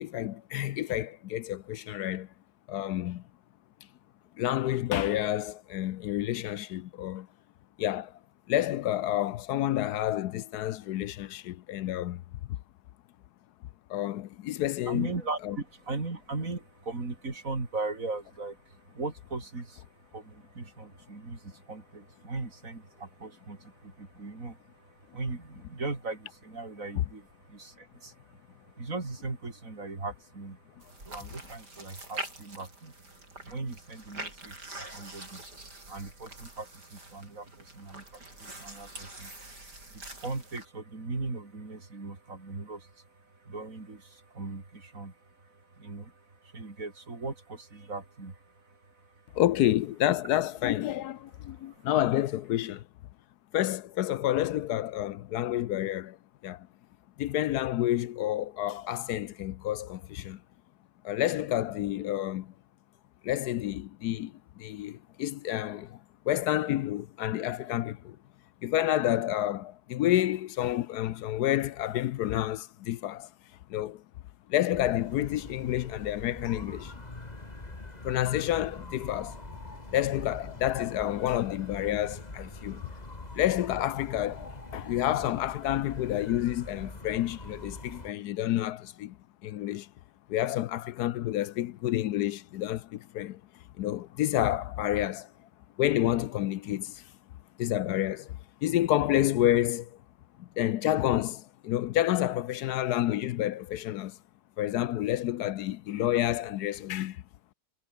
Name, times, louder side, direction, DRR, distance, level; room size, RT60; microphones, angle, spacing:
voice 1, 0.0-2.3 2.7-3.2 4.4-7.3 7.8-8.1 8.5-12.2 13.9-15.1 15.4-15.6 49.3-52.8 53.5-56.2 56.4-56.7 57.2-60.4 61.0-62.5 63.2-66.0 66.3-68.2 68.6-73.3 73.7-74.0 74.5-76.9 78.0-79.4 79.9-82.9 83.3-89.2 89.4-89.9 90.3-93.4 93.8-95.3 95.8-97.0 97.6-100.0 100.4-104.2 104.6-107.2, left 13 dB, 75° left, 1.2 m, -29 dB
voice 2, 14.9-49.4 51.3-51.9, right 3 dB, 55° right, 4.1 m, -39 dB
sound 1, 30.8-40.7, right 2 dB, 85° right, 8.8 m, -45 dB
sound 2, 74.7-88.1, left 2 dB, 25° left, 3.0 m, -43 dB
omnidirectional pair, 1.7 m